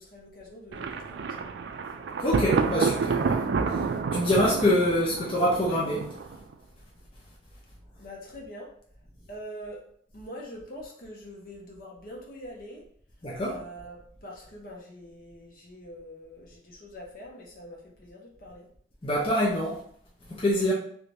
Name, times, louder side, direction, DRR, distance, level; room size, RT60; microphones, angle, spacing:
voice 1, 0.0-1.4 8.0-8.7 9.3-9.8 10.1-12.8 13.4-18.7, equal, 50° left, 0.9 m, -44 dB
Thunder, 0.7-6.5, right 5 dB, 75° right, 0.3 m, -29 dB
voice 2, 2.2-3.4 3.7-3.8 4.1-6.1 13.2-13.6 19.0-19.8 20.3-20.7, left 1 dB, 30° left, 0.6 m, -25 dB
3.2 x 2.6 x 3.2 m
head